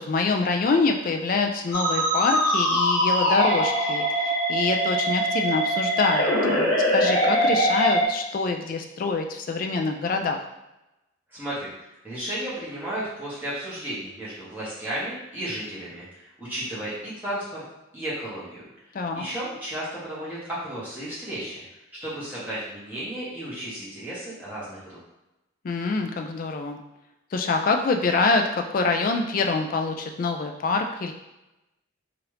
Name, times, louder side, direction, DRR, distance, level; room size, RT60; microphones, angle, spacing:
voice 1, 0.0-10.4 18.9-19.2 25.6-26.8 27.3-31.1, left 4 dB, 45° left, 4 dB, 0.3 m, -25 dB
Musical instrument, 1.7-8.1, equal, 75° left, 0.8 m, -23 dB
voice 2, 11.3-11.7 12.0-17.6 17.9-18.7 19.1-25.0, right 1 dB, 10° right, -10 dB, 1.1 m, -34 dB
2.9 x 2.4 x 3.2 m, 0.97 s
head